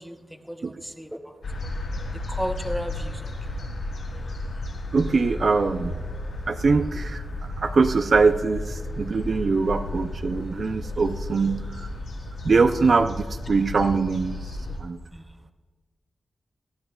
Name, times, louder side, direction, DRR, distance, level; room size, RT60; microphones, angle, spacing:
voice 1, 0.0-1.3 2.1-3.6 15.1-15.2, equal, ahead, 6 dB, 0.8 m, -34 dB
sound 1, 1.4-14.8, left 2 dB, 85° left, 3.3 m, -33 dB
voice 2, 4.9-5.9 6.5-7.2 7.6-11.9 12.4-14.4 14.8-15.0, right 4 dB, 50° right, 9 dB, 0.4 m, -22 dB
18.5 x 13.0 x 2.3 m, 1.4 s
wide cardioid pair, 160°, 0 cm